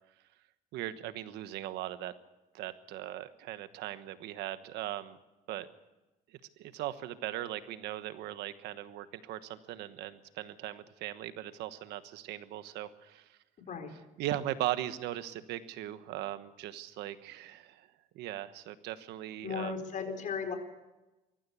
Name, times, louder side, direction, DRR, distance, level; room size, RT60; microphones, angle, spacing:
voice 1, 0.7-2.1 2.5-5.2 5.5-5.7 6.3-13.4 14.2-17.9 18.1-19.8, right 13 dB, 85° right, 12 dB, 1.2 m, -39 dB
voice 2, 19.4-20.5, left 6 dB, 50° left, 6 dB, 4.4 m, -36 dB
23.0 x 14.5 x 8.3 m, 1.0 s
cardioid pair, 110°, 17 cm